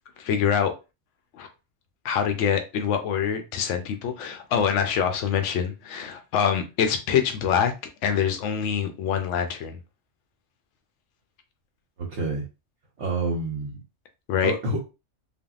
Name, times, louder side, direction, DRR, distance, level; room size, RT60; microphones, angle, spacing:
voice 1, 0.2-0.7 1.4-1.5 2.0-7.7 8.0-9.8 14.3-14.5, left 8 dB, 80° left, 0.9 m, -25 dB
voice 2, 12.0-12.4 13.0-13.8 14.4-14.9, right 2 dB, 70° right, 1.0 m, -28 dB
3.4 x 2.2 x 2.3 m
omnidirectional pair, 1.2 m